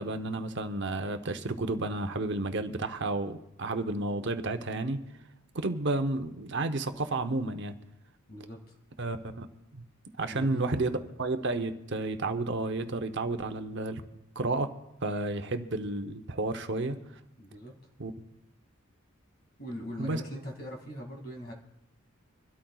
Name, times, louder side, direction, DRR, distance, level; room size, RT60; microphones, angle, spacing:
voice 1, 0.0-5.1 5.5-7.7 9.0-9.5 9.7-9.8 10.2-14.0 14.4-14.7 15.0-17.0 18.0-18.1 20.0-20.2, right 2 dB, 55° right, 8 dB, 0.8 m, -31 dB
voice 2, 8.3-8.8 10.3-11.0 17.4-17.7 19.6-21.5, equal, 45° left, 0 dB, 2.3 m, -41 dB
26.0 x 13.0 x 2.4 m, 0.87 s
head